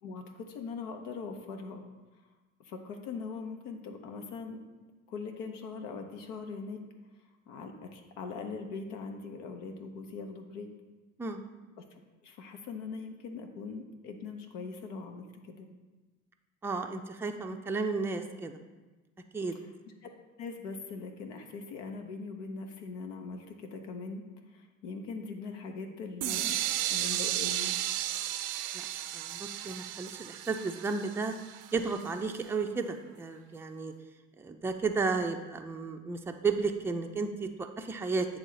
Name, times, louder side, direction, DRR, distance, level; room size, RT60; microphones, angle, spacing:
voice 1, 0.0-1.8 2.6-4.6 5.1-6.8 7.5-10.7 11.9-15.7 20.0-20.1 20.4-24.2 24.5-26.6 26.9-27.7, left 4 dB, 70° left, 4 dB, 0.8 m, -41 dB
voice 2, 16.6-18.6 19.3-19.5 28.7-28.9 29.1-31.4 31.7-33.9 34.4-38.3, right 4 dB, 5° right, 4 dB, 0.4 m, -33 dB
sound 1, 26.2-32.0, right 12 dB, 70° right, 0.5 m, -34 dB
8.0 x 3.3 x 3.9 m, 1.2 s
hypercardioid pair, 65°, 38 cm